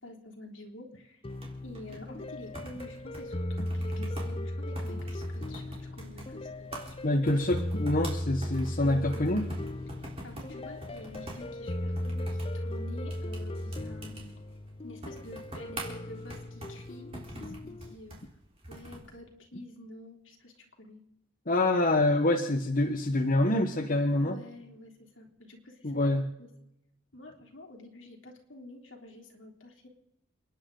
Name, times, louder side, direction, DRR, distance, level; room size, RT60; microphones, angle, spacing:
voice 1, 0.0-1.2 1.6-6.5 7.0-7.1 8.8-9.5 10.2-14.3 14.8-18.2 18.7-21.0 24.2-26.5 27.1-29.9, left 1 dB, 75° left, 1 dB, 3.3 m, -48 dB
sound 1, 1.2-17.9, left 1 dB, 30° left, 0.5 m, -37 dB
sound 2, 1.3-19.1, right 1 dB, 30° right, 3.9 m, -46 dB
voice 2, 7.0-9.5 21.5-24.4 25.8-26.2, left 1 dB, 45° left, 3 dB, 1.2 m, -26 dB
30.0 x 10.5 x 3.9 m, 0.83 s
head